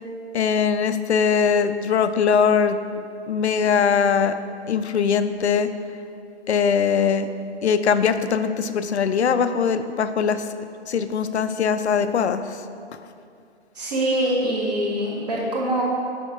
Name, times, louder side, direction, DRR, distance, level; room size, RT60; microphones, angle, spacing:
voice 1, 0.3-2.8 3.3-4.4 4.7-5.7 6.5-7.3 7.6-10.4 10.9-12.6, left 6 dB, 70° left, 10 dB, 0.5 m, -21 dB
voice 2, 13.7-15.8, right 1 dB, 35° right, -3 dB, 1.3 m, -24 dB
7.1 x 5.1 x 4.6 m, 2.5 s
hypercardioid pair, 175°, 34 cm